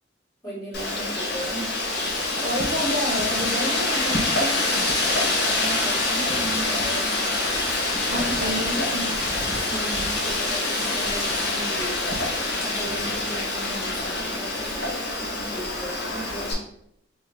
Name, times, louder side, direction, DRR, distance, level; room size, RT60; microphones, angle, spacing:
voice 1, 0.4-1.7 5.1-7.3 8.1-8.8 9.6-12.1 12.6-16.6, right 1 dB, 20° left, -9 dB, 1.2 m, -36 dB
Wind, 0.7-16.5, left 2 dB, 60° left, 1.1 m, -25 dB
voice 2, 2.4-4.9 8.1-9.2, equal, 45° right, 3 dB, 0.6 m, -29 dB
3.8 x 2.7 x 2.9 m, 0.74 s
head